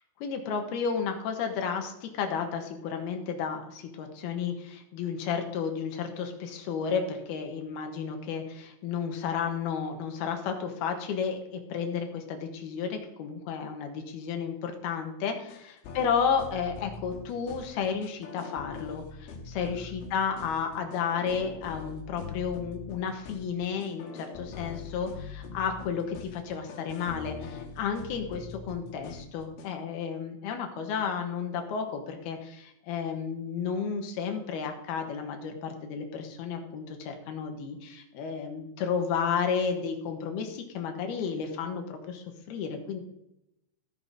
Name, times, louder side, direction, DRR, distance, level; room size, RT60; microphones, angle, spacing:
voice 1, 0.2-43.0, left 6 dB, 70° left, 4 dB, 2.9 m, -32 dB
sound 1, 15.5-29.7, left 5 dB, 85° left, 4.0 m, -43 dB
15.5 x 5.8 x 5.4 m, 0.83 s
omnidirectional pair, 5.4 m